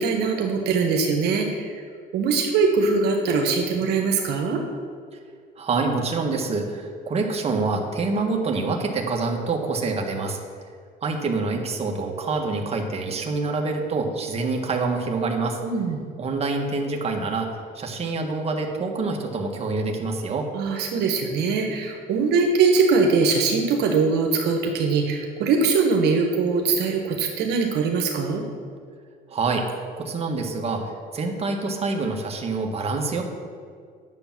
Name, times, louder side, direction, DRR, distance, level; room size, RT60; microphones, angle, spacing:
voice 1, 0.0-1.7 2.1-4.6 15.6-16.0 20.5-28.4, right 4 dB, 80° right, 2 dB, 1.3 m, -22 dB
voice 2, 5.6-10.4 11.0-15.6 16.2-17.5 17.7-20.5 29.3-29.7 30.0-33.3, right 3 dB, 35° right, 2 dB, 1.5 m, -26 dB
9.9 x 6.9 x 6.0 m, 2.1 s
cardioid pair, 110°, 17 cm